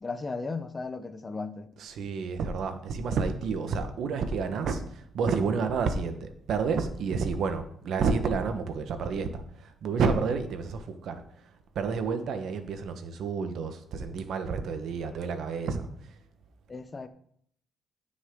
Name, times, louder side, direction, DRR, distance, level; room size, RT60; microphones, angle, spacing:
voice 1, 0.0-1.7 16.7-17.1, left 4 dB, 30° left, 0.9 m, -35 dB
voice 2, 1.8-11.2 11.7-16.1, right 5 dB, 70° right, 1.3 m, -30 dB
15.0 x 6.3 x 3.9 m
cardioid pair, 90°, 0 cm